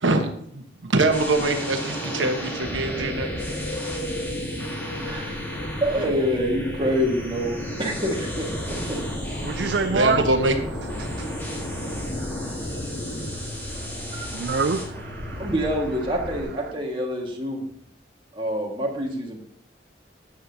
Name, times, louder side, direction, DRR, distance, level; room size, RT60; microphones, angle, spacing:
voice 1, 0.5-3.3 9.9-10.5, right 2 dB, 85° right, 1.2 m, -23 dB
sound 1, 1.1-16.4, equal, 10° left, 1.8 m, -35 dB
sound 2, 1.3-13.3, equal, 40° left, 2.3 m, -34 dB
sound 3, 4.2-15.6, left 4 dB, 5° right, 1.3 m, -43 dB
voice 2, 5.0-5.3 5.8-9.0 14.1-14.3 15.4-17.6 18.3-19.4, equal, 25° right, 1.8 m, -26 dB
voice 3, 9.4-10.3 10.8-15.5, right 4 dB, 65° right, 0.5 m, -30 dB
12.5 x 8.7 x 2.8 m
head